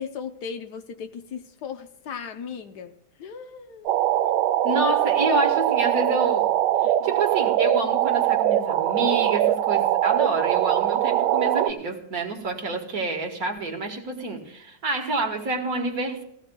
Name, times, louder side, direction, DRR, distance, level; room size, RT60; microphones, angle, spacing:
voice 1, 0.0-2.9 3.2-3.9 7.0-7.1, left 6 dB, 70° left, 7 dB, 1.3 m, -37 dB
sound 1, 3.9-11.7, right 12 dB, 90° right, 1.4 m, -22 dB
voice 2, 4.6-6.5 6.8-16.2, right 3 dB, 55° right, 3 dB, 1.9 m, -28 dB
17.5 x 15.5 x 2.3 m, 0.76 s
omnidirectional pair, 1.9 m